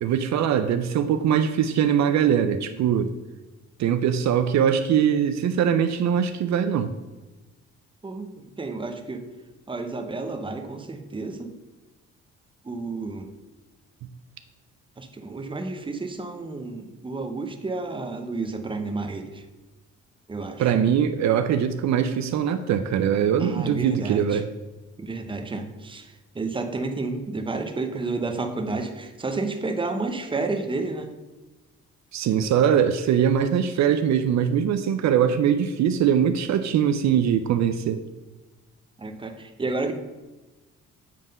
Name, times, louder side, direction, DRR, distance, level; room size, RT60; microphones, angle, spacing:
voice 1, 0.0-3.1 3.8-6.9 20.6-24.5 32.1-38.0, right 8 dB, 65° right, 9 dB, 0.5 m, -22 dB
voice 2, 8.0-9.3 9.7-11.5 12.6-13.3 15.0-19.4 20.3-20.7 23.4-24.4 25.0-31.1 39.0-39.9, right 3 dB, 15° right, 6 dB, 0.7 m, -31 dB
7.6 x 3.6 x 5.3 m, 1.1 s
cardioid pair, 90°, 30 cm